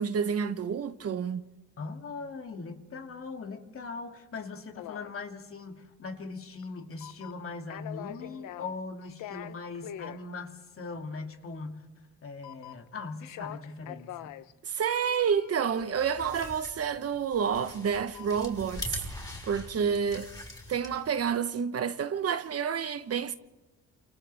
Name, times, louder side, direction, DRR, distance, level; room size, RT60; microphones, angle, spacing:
voice 1, 0.0-1.4 14.6-19.0 19.4-20.3 20.7-23.3, right 7 dB, 50° right, 1.1 m, -29 dB
voice 2, 1.8-14.4, left 4 dB, 45° left, 2.6 m, -40 dB
sound 1, 4.8-5.2 6.6-6.7 7.0-7.5 7.7-8.8 9.0-10.2 12.4-12.9 13.2-14.5 14.8-17.0 18.0-18.4 18.7-18.8, left 12 dB, 85° left, 0.9 m, -44 dB
sound 2, 15.7-21.2, left 2 dB, 15° left, 5.2 m, -43 dB
29.0 x 27.5 x 3.5 m
cardioid pair, 90°, 30 cm